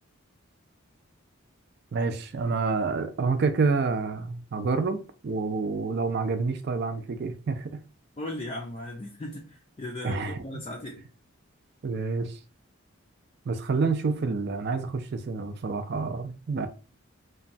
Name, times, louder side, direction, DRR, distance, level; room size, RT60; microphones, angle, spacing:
voice 1, 1.9-7.8 10.0-10.6 11.8-12.4 13.5-16.7, right 4 dB, 50° right, 0.4 m, -28 dB
voice 2, 8.2-11.0, left 1 dB, 25° left, 0.3 m, -37 dB
3.0 x 2.2 x 2.6 m
head